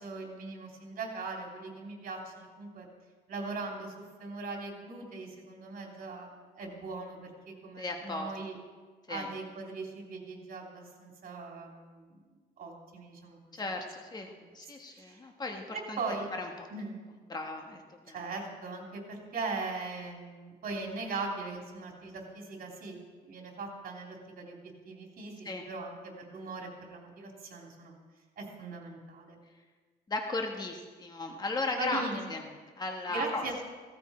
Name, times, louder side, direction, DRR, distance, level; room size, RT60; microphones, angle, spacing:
voice 1, 0.0-2.9 3.3-6.3 6.5-8.6 9.1-12.2 12.6-13.5 14.3-14.4 14.9-15.2 15.7-16.3 16.7-17.0 18.1-23.0 23.2-27.9 28.4-29.4 31.8-32.3 33.1-33.6, right 3 dB, 55° right, 0 dB, 3.4 m, -40 dB
voice 2, 7.8-8.3 9.1-9.3 13.5-16.0 16.4-16.7 17.3-17.8 18.1-18.2 25.4-25.7 30.1-32.0 32.3-32.4 32.8-33.4, left 2 dB, 25° left, 3 dB, 1.4 m, -36 dB
16.5 x 13.5 x 4.3 m, 1.4 s
cardioid pair, 130°, 17 cm